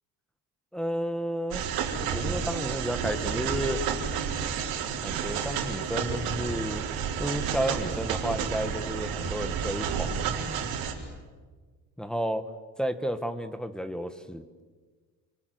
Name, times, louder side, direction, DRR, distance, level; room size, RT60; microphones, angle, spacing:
voice 1, 0.7-1.6 2.1-3.8 5.0-6.8 7.2-10.7 12.0-12.4 12.8-14.4, equal, ahead, 8 dB, 1.2 m, -32 dB
sound 1, 1.5-10.9, right 7 dB, 70° right, 4.2 m, -31 dB
28.5 x 26.0 x 7.8 m, 1.5 s
cardioid pair, 155°, 37 cm